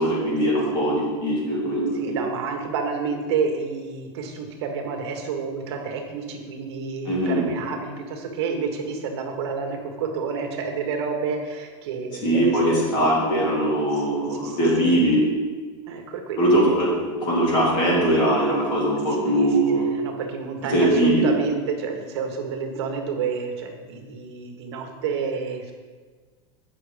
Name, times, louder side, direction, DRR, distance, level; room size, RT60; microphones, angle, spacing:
voice 1, 0.0-2.2 7.1-7.4 12.2-15.2 16.4-16.9 17.2-19.8 20.6-21.3, right 1 dB, 30° left, -4 dB, 2.6 m, -21 dB
voice 2, 1.9-12.8 13.9-14.0 14.3-15.0 15.9-16.8 19.1-25.7, right 5 dB, 65° right, 3 dB, 1.4 m, -29 dB
8.7 x 5.9 x 5.1 m, 1.5 s
supercardioid pair, 175°, 15 cm